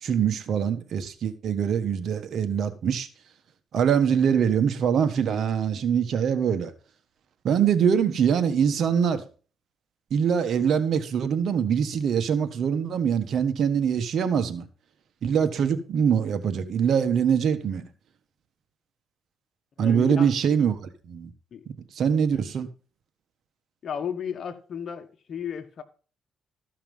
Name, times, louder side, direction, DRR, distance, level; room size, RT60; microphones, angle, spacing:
voice 1, 0.0-3.1 3.7-6.7 7.4-9.2 10.1-14.6 15.2-17.8 19.8-21.3 21.9-22.7, right 7 dB, 65° right, 1.4 m, -23 dB
voice 2, 19.8-20.3 21.5-21.6 23.8-25.8, left 7 dB, 55° left, 1.5 m, -33 dB
14.0 x 5.7 x 5.5 m
cardioid pair, 90°, 0 cm